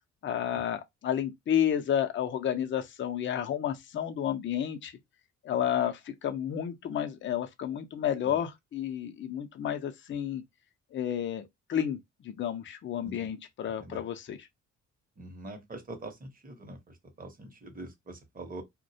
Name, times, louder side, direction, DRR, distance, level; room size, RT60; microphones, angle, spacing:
voice 1, 0.2-4.9 5.4-10.4 10.9-11.4 11.7-12.0 12.2-14.4, left 9 dB, 40° left, 0.5 m, -31 dB
voice 2, 13.6-14.0 15.2-18.6, right 2 dB, 30° right, 0.8 m, -44 dB
2.3 x 2.1 x 2.7 m
cardioid pair, 90°, 30 cm